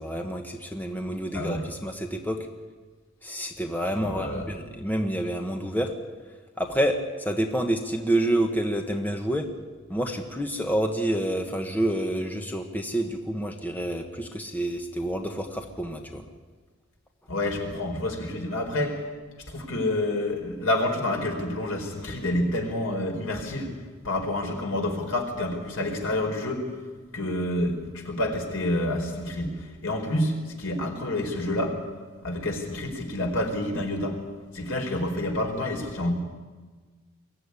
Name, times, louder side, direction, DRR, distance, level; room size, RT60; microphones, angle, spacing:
voice 1, 0.0-2.4 3.2-5.9 6.6-9.5 9.9-16.2, right 1 dB, 10° left, 4 dB, 1.3 m, -28 dB
voice 2, 1.3-1.7 4.0-4.5 17.3-19.0 19.5-23.8 24.0-26.7 27.1-31.8 32.2-34.2 34.5-36.1, left 1 dB, 80° left, 2 dB, 4.5 m, -28 dB
22.5 x 14.5 x 9.8 m, 1.4 s
head